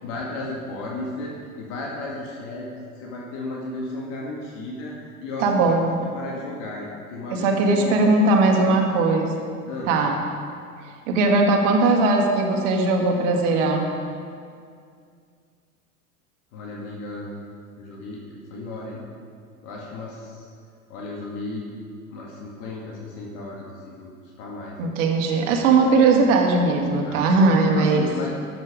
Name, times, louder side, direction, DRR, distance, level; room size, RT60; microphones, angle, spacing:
voice 1, 0.0-2.7 3.0-4.9 5.2-5.8 6.1-8.0 8.2-8.7 9.7-9.9 16.5-17.3 17.8-19.0 19.6-20.5 20.9-21.7 22.1-24.9 27.0-27.2 27.5-28.3, left 2 dB, 55° left, -3 dB, 2.0 m, -34 dB
voice 2, 5.4-5.8 7.3-9.3 9.9-10.2 11.1-13.9 24.8-28.1, right 3 dB, 60° right, 2 dB, 1.9 m, -19 dB
13.0 x 8.0 x 5.1 m, 2.2 s
figure-of-eight pair, 85°, 43 cm